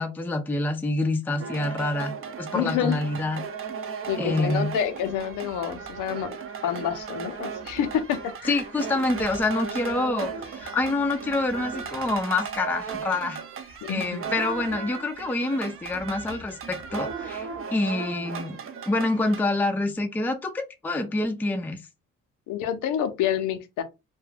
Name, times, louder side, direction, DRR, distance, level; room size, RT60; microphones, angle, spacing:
voice 1, 0.0-3.4 4.2-4.7 8.5-13.4 13.9-18.6 18.9-21.8, left 2 dB, 5° left, 0.4 m, -27 dB
sound 1, 1.4-19.5, right 6 dB, 45° right, 0.6 m, -36 dB
voice 2, 2.5-3.0 4.1-6.4 6.6-8.6 13.8-14.2 22.5-23.8, left 9 dB, 90° left, 0.6 m, -28 dB
2.3 x 2.2 x 3.2 m
cardioid pair, 90°, 30 cm